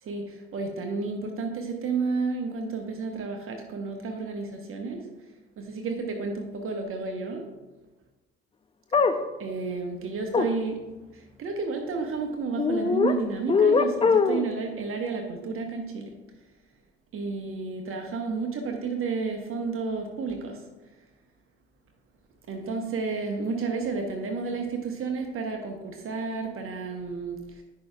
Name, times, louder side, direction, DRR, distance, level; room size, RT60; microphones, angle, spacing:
voice 1, 0.0-5.3 5.6-7.5 9.4-16.1 17.1-20.7 22.5-27.6, right 4 dB, 45° right, 3 dB, 1.0 m, -31 dB
sound 1, 8.9-9.2 10.3-10.5 12.6-13.1 13.5-14.5, left 5 dB, 20° left, 0.5 m, -21 dB
9.5 x 6.3 x 2.4 m, 1.1 s
figure-of-eight pair, 50°, 30 cm